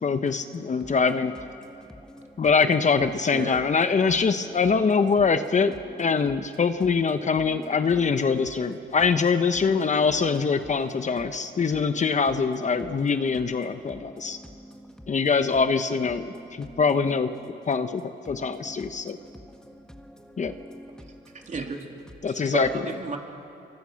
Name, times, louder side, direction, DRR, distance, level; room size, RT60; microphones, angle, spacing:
voice 1, 0.0-1.3 2.4-5.7 6.0-14.4 15.1-17.3 17.7-19.2 20.4-20.5 22.2-22.7, left 5 dB, 35° left, 9 dB, 1.1 m, -23 dB
voice 2, 1.6-2.3 13.9-15.1 16.3-16.8 18.3-21.0, equal, 5° left, 4 dB, 1.7 m, -46 dB
voice 3, 21.3-22.0 22.4-23.2, right 4 dB, 40° right, 2 dB, 3.2 m, -33 dB
26.5 x 24.0 x 6.5 m, 2.6 s
cardioid pair, 90°, 20 cm